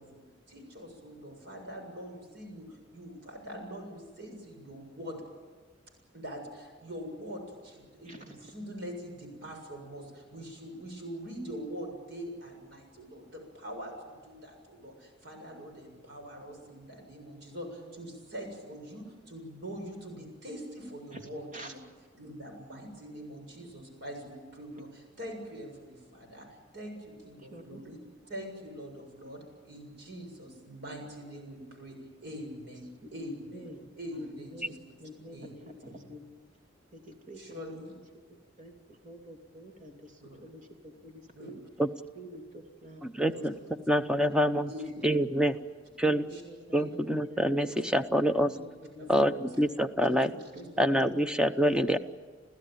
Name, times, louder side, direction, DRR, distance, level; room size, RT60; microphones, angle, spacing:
voice 1, 0.0-5.2 6.1-21.8 22.1-28.0 28.2-32.8 33.1-33.7 34.0-34.8 35.3-35.5 37.4-38.0 40.2-40.4 41.3-41.6 43.3-43.5 44.7-45.0 46.3-46.4 46.8-46.9 48.4-48.6 49.0-49.5 50.0-50.8 51.7-51.8, equal, 65° right, 3 dB, 7.1 m, -43 dB
voice 2, 8.1-8.4 17.6-18.0 21.1-21.2 21.5-21.7 27.5-27.8 33.0-33.9 34.1-36.2 36.9-37.9 38.6-41.6 42.1-43.0 43.3-44.7 45.0-45.4 46.0-47.0 47.3-48.0 48.6-48.7 48.9-49.3 50.0-51.8, equal, 45° right, 3 dB, 3.0 m, -48 dB
voice 3, 43.0-43.5 43.9-44.7 45.0-45.6 46.0-46.3 46.7-48.5 49.1-50.3 50.8-52.0, equal, 5° right, 9 dB, 0.8 m, -26 dB
29.5 x 15.0 x 9.2 m, 1.5 s
head